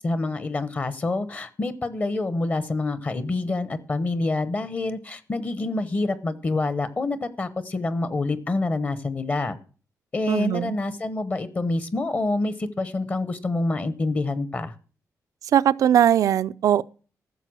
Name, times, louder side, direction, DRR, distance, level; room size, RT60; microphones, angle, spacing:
voice 1, 0.0-9.6 10.1-14.7, left 2 dB, 30° left, 0.9 m, -27 dB
voice 2, 10.3-10.7 15.5-16.8, right 10 dB, 70° right, 0.5 m, -20 dB
14.0 x 6.8 x 6.2 m
wide cardioid pair, 175°, 6 cm